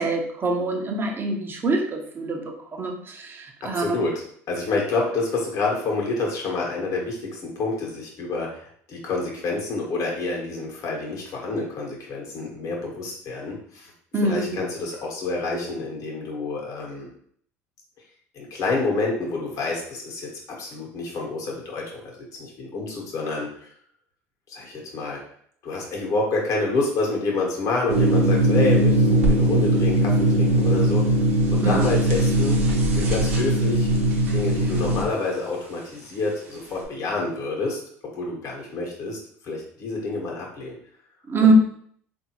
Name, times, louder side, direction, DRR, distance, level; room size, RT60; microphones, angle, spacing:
voice 1, 0.0-3.8 14.1-14.6 15.5-15.6 31.6-31.8 41.3-41.5, right 3 dB, 30° right, 2 dB, 0.8 m, -24 dB
voice 2, 3.6-4.1 4.5-13.9 14.2-17.1 18.3-23.7 24.5-25.2 25.6-31.1 31.5-32.6 32.9-33.9 34.3-37.8 38.2-39.2 39.4-40.7 41.4-41.5, left 3 dB, 50° left, -2 dB, 1.2 m, -28 dB
sound 1, 27.9-35.0, right 1 dB, 85° right, 0.8 m, -20 dB
3.6 x 2.7 x 2.9 m, 0.62 s
hypercardioid pair, 85°, 7 cm